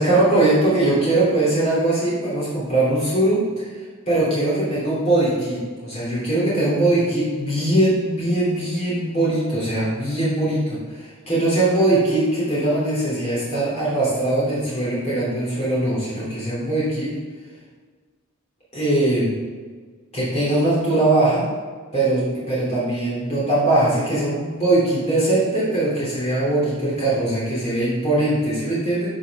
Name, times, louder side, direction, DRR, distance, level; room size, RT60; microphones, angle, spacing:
voice 1, 0.0-10.6 10.9-17.1 18.7-19.3 20.1-21.4 21.9-29.1, right 2 dB, 30° left, -8 dB, 3.2 m, -21 dB
13.5 x 6.2 x 3.7 m, 1.5 s
head